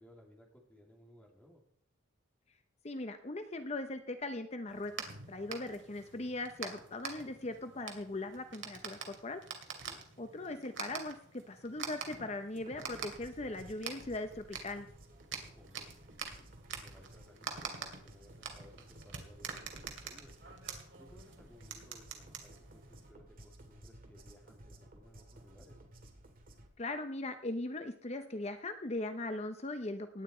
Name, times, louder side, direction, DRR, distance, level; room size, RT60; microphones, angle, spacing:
voice 1, 0.0-1.6 9.8-10.1 15.4-15.9 16.7-20.3 21.0-25.8, equal, 10° left, 0 dB, 2.8 m, -60 dB
voice 2, 2.8-9.4 10.2-14.9 26.8-30.2, left 2 dB, 35° left, 8 dB, 0.7 m, -39 dB
sound 1, 4.7-23.1, right 6 dB, 70° right, 2.5 m, -46 dB
sound 2, 12.6-26.7, right 1 dB, 45° right, 2.2 m, -56 dB
17.5 x 10.0 x 4.4 m, 0.65 s
head